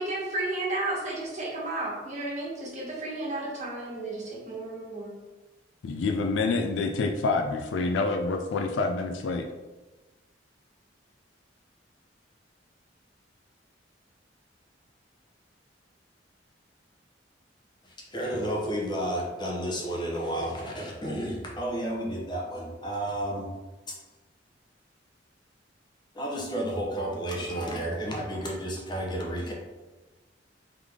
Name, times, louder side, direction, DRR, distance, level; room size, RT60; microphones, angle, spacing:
voice 1, 0.0-5.1, right 2 dB, 40° right, -4 dB, 1.1 m, -33 dB
voice 2, 5.8-9.5, left 3 dB, 75° left, 4 dB, 0.3 m, -27 dB
voice 3, 18.1-23.5 23.9-24.0 26.1-29.5, right 1 dB, 25° left, -2 dB, 0.8 m, -31 dB
3.6 x 3.3 x 3.5 m, 1.2 s
head